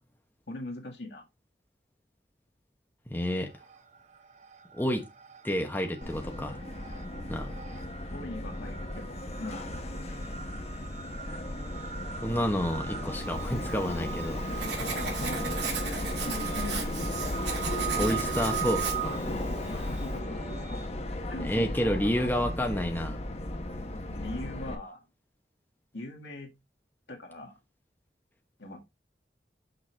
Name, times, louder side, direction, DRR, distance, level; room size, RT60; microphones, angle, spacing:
voice 1, 0.5-1.3 8.1-9.7 15.1-15.4 15.8-16.9 19.7-20.8 21.3-22.3 24.2-25.1 25.9-26.5 27.1-27.6 28.6-28.8, left 2 dB, 80° left, 1.8 m, -41 dB
voice 2, 3.1-3.5 4.7-5.1 5.4-6.6 7.3-7.5 12.2-14.7 18.0-19.2 21.4-23.2, equal, 10° left, 1.0 m, -30 dB
sound 1, 3.3-4.0 4.3-20.9, right 11 dB, 40° right, 0.6 m, -41 dB
Subway metro underground, 6.0-24.7, left 1 dB, 35° left, 0.9 m, -35 dB
Writing, 13.5-20.2, right 5 dB, 80° right, 2.0 m, -38 dB
6.3 x 6.1 x 3.3 m
head